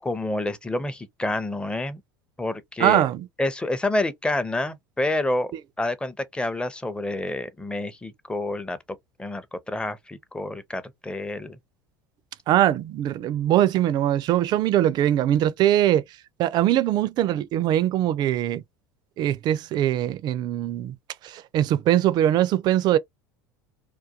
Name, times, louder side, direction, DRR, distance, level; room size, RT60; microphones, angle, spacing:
voice 1, 0.0-2.0 2.4-3.1 3.4-5.5 5.8-8.8 9.2-11.6, left 2 dB, 10° left, 0.5 m, -28 dB
voice 2, 2.8-3.3 12.5-16.0 16.4-18.6 19.2-20.9 21.2-23.0, right 12 dB, 45° right, 0.3 m, -22 dB
2.3 x 2.2 x 2.7 m
hypercardioid pair, 75°, 10 cm